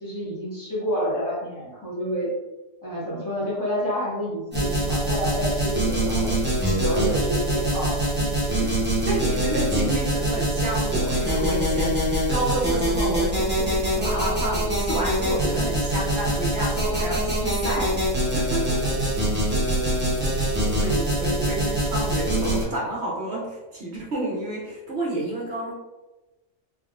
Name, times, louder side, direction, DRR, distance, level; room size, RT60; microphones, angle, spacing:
voice 1, 0.0-2.3 2.8-6.3 6.6-8.3 20.6-20.8, equal, 15° left, -9 dB, 1.1 m, -29 dB
sound 1, 4.5-22.6, right 1 dB, 10° right, 0.6 m, -24 dB
voice 2, 9.1-17.9 18.3-18.8 20.8-25.7, right 1 dB, 60° right, -5 dB, 0.9 m, -30 dB
3.5 x 2.3 x 2.4 m, 1.1 s
omnidirectional pair, 1.3 m